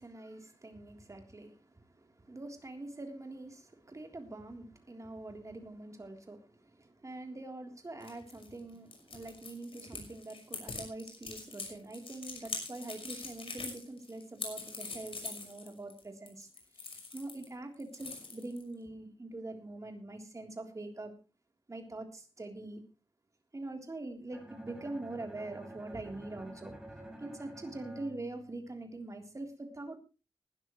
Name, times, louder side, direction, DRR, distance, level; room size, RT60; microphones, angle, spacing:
voice 1, 0.0-21.1 21.7-22.8 23.5-26.8 27.2-30.0, right 2 dB, 35° right, 4 dB, 3.5 m, -44 dB
sound 1, 8.0-17.5 17.7-18.7, left 4 dB, 75° left, 5.8 m, -43 dB
Bowed string instrument, 24.3-29.2, right 1 dB, 10° right, 4.0 m, -50 dB
20.0 x 12.5 x 3.2 m, 0.31 s
wide cardioid pair, 105°, 9 cm